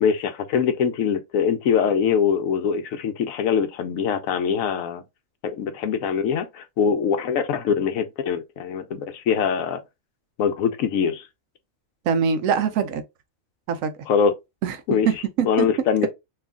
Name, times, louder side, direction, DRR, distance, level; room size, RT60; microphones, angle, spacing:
voice 1, 0.0-5.0 5.4-9.8 10.4-11.3 14.1-14.3 14.9-15.1 15.4-16.1, left 7 dB, 85° left, 1.0 m, -23 dB
voice 2, 12.0-13.0 13.7-13.9 14.6-14.8 15.1-15.7, right 7 dB, 80° right, 1.1 m, -23 dB
3.1 x 2.3 x 3.6 m
omnidirectional pair, 1.4 m